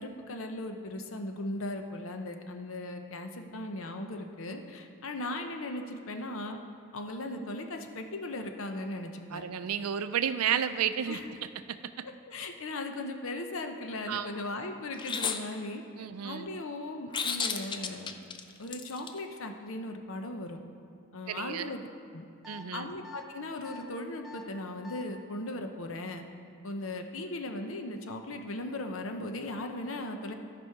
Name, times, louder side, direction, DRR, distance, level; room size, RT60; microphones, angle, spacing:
voice 1, 0.0-6.6 6.9-9.4 11.1-11.3 12.0-18.1 18.6-20.6 21.1-21.8 22.1-22.3 22.7-26.2 26.6-30.3, left 2 dB, 65° left, 5 dB, 0.7 m, -38 dB
voice 2, 9.3-11.2 11.7-11.8 14.1-14.3 16.0-16.5 21.3-21.7 22.5-22.9, right 8 dB, 90° right, 11 dB, 0.4 m, -31 dB
sound 1, 15.0-15.4 17.1-19.1, left 6 dB, 20° left, 0.4 m, -32 dB
sound 2, 22.4-22.6 23.0-23.2 23.6-23.8 24.2-24.4 24.8-25.0, left 3 dB, ahead, 0.7 m, -46 dB
14.0 x 5.3 x 4.6 m, 2.3 s
head